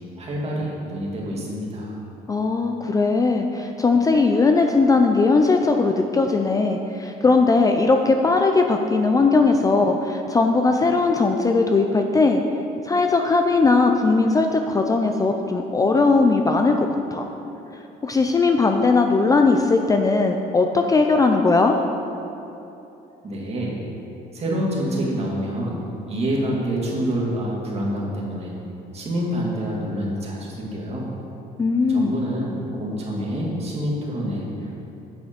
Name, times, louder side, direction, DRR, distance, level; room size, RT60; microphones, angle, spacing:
voice 1, 0.0-2.0 23.2-23.8 24.3-28.5 28.9-31.1 31.9-34.8, equal, 40° right, -3 dB, 2.2 m, -27 dB
voice 2, 2.3-12.4 12.8-17.3 18.0-21.8 31.6-32.2, left 3 dB, 20° left, 4 dB, 0.4 m, -19 dB
8.4 x 6.1 x 5.2 m, 2.9 s
cardioid pair, 110°, 17 cm